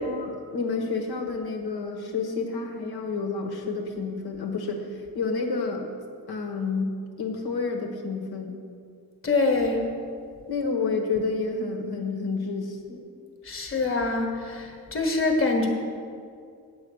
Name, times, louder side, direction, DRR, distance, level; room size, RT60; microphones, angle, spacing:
voice 1, 0.0-4.8 5.1-5.9 6.3-8.6 10.5-13.0, left 4 dB, 80° left, 3 dB, 1.4 m, -29 dB
voice 2, 9.2-9.9 13.4-15.7, left 3 dB, 35° left, 2 dB, 1.5 m, -25 dB
8.4 x 8.3 x 6.3 m, 2.3 s
wide cardioid pair, 135°, 38 cm